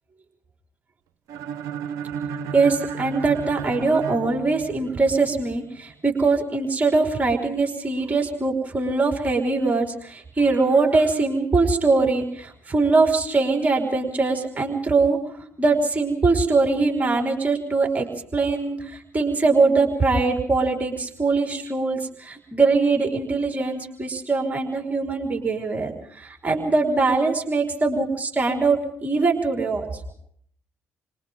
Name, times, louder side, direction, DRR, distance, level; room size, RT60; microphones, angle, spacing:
sound 1, 1.3-5.2, right 7 dB, 60° right, 1.1 m, -33 dB
voice 1, 2.5-15.2 15.6-18.1 18.3-29.9, right 3 dB, 25° right, 2 dB, 4.9 m, -22 dB
29.5 x 26.0 x 3.9 m, 0.66 s
figure-of-eight pair, 45°, 7 cm